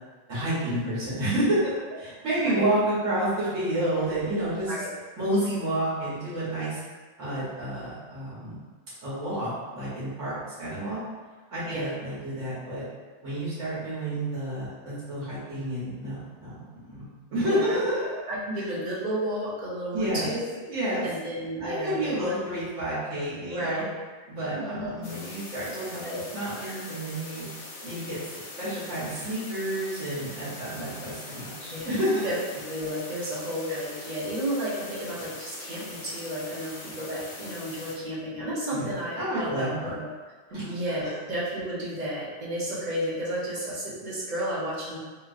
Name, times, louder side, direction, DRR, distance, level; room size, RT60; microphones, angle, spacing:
voice 1, 0.3-4.7 5.2-6.8 7.2-8.6 9.0-11.0 11.5-12.8 13.2-18.1 19.9-20.4 20.7-21.1 21.6-23.8 24.3-27.5 27.8-32.2 33.7-33.8 38.7-38.9 39.2-40.0 40.5-40.6, right 1 dB, 85° right, -11 dB, 1.4 m, -30 dB
voice 2, 17.4-17.8 18.3-20.4 21.0-22.3 23.5-23.9 24.5-25.1 26.0-26.2 26.6-26.8 31.7-32.3 32.7-40.1 40.7-45.0, equal, 40° right, -7 dB, 0.8 m, -32 dB
sound 1, 25.0-38.0, left 2 dB, 85° left, 1.0 m, -42 dB
2.9 x 2.7 x 2.4 m, 1.3 s
omnidirectional pair, 1.2 m